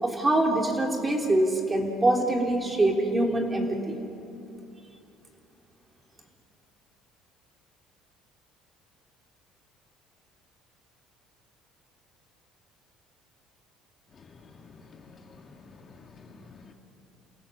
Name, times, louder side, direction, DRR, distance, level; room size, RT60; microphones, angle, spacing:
voice 1, 0.0-4.0, right 1 dB, 15° right, 1 dB, 3.2 m, -24 dB
voice 2, 14.1-16.7, left 4 dB, 35° left, 3 dB, 1.8 m, -51 dB
28.5 x 17.0 x 7.7 m, 2.6 s
cardioid pair, 125°, 0 cm